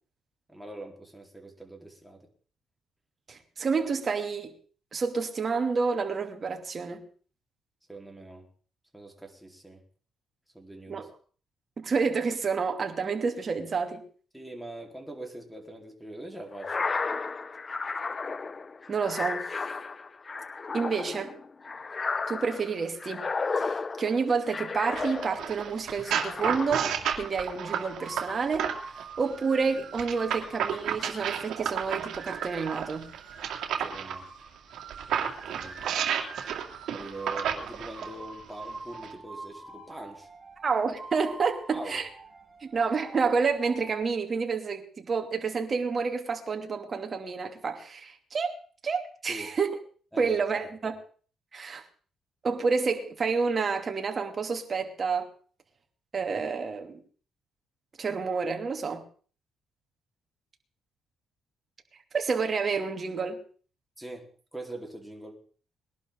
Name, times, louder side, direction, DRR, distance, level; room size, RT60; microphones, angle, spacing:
voice 1, 0.5-2.3 7.9-8.5 8.9-9.8 10.5-11.1 14.3-16.9 33.7-34.3 35.5-35.9 36.9-40.3 41.7-42.0 49.3-49.5 50.1-50.4 64.0-65.4, right 2 dB, ahead, 4.0 m, -43 dB
voice 2, 3.3-4.5 4.9-7.0 10.9-11.1 11.8-14.0 18.9-19.6 20.7-21.3 22.3-23.3 23.6-26.9 27.2-33.1 40.6-42.1 42.6-48.6 48.8-49.7 50.2-51.0 51.5-51.8 52.4-55.3 56.1-57.0 58.0-59.0 62.1-63.4, right 5 dB, 40° right, 2.7 m, -29 dB
sound 1, 16.5-25.6 26.0-27.1, left 4 dB, 35° left, 0.7 m, -33 dB
sound 2, 25.0-29.0 30.0-34.2 34.7-38.1 38.9-39.1, right 8 dB, 75° right, 2.4 m, -31 dB
sound 3, 26.1-44.0, right 4 dB, 25° right, 5.8 m, -45 dB
21.0 x 11.5 x 3.9 m
cardioid pair, 90°, 0 cm